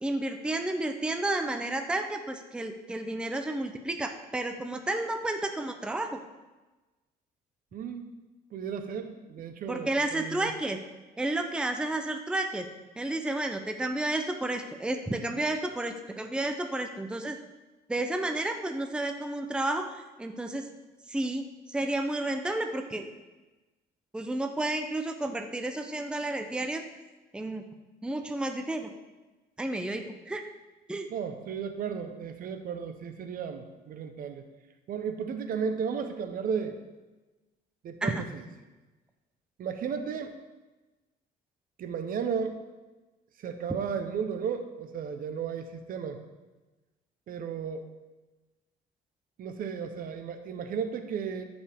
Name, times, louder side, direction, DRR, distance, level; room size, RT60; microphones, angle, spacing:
voice 1, 0.0-6.2 9.7-10.8 11.2-12.7 13.0-17.4 17.9-20.6 21.1-23.1 24.1-26.8 27.3-27.6 28.0-28.9 29.6-30.4 30.9-31.1 38.0-38.2, right 2 dB, 5° right, 6 dB, 0.6 m, -31 dB
voice 2, 7.7-8.1 8.5-10.5 31.1-34.5 34.9-36.8 37.8-38.4 39.6-40.4 41.8-42.6 43.4-46.2 47.3-47.9 49.4-51.4, right 6 dB, 55° right, 8 dB, 0.9 m, -34 dB
14.5 x 5.3 x 3.5 m, 1.2 s
cardioid pair, 110°, 17 cm